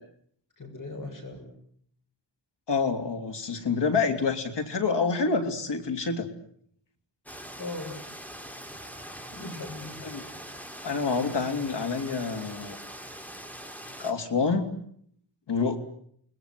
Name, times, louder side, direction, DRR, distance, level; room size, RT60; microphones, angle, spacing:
voice 1, 0.6-1.5 7.6-7.9 9.3-10.0, left 2 dB, 45° left, 4 dB, 7.5 m, -38 dB
voice 2, 2.7-6.3 10.1-10.2 10.8-12.8 14.0-14.7 15.5-15.8, left 4 dB, 70° left, 6 dB, 3.4 m, -27 dB
sound 1, 7.3-14.1, equal, 5° left, 3.3 m, -42 dB
29.5 x 20.5 x 7.9 m, 0.67 s
wide cardioid pair, 110°, 43 cm